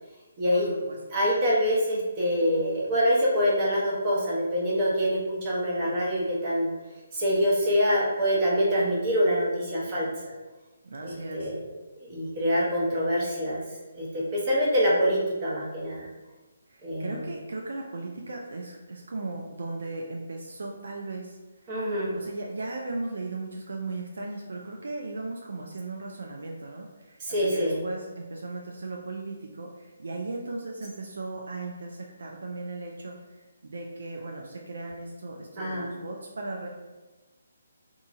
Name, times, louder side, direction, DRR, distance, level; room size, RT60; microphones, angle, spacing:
voice 1, 0.5-1.0 10.8-11.5 16.7-36.7, right 2 dB, 75° right, 0 dB, 0.3 m, -37 dB
voice 2, 1.1-6.7 7.1-10.1 11.0-11.6 12.0-13.6 13.9-14.1 14.3-16.1 16.8-17.2 21.7-22.2 27.2-27.8 35.6-35.9, equal, 30° right, -6 dB, 0.8 m, -25 dB
2.9 x 2.3 x 2.5 m, 1.2 s
hypercardioid pair, 155°, 0 cm